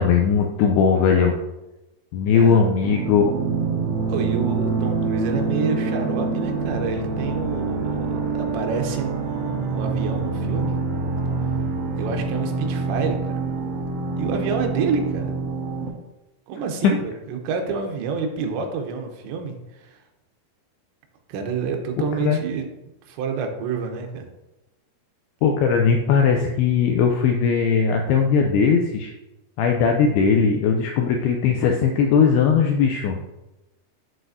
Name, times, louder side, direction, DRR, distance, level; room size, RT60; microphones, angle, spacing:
voice 1, 0.0-1.4 2.1-3.3 22.3-22.4 25.4-29.1 29.6-33.2, left 6 dB, 85° left, 2 dB, 2.3 m, -19 dB
voice 2, 2.3-2.6 4.1-10.7 12.0-13.4 14.2-15.3 16.5-20.0 21.3-22.6 23.1-24.2, right 5 dB, 85° right, 4 dB, 3.1 m, -28 dB
sound 1, 2.8-15.9, right 4 dB, 70° right, 2.6 m, -26 dB
12.0 x 4.1 x 2.6 m, 0.97 s
omnidirectional pair, 5.1 m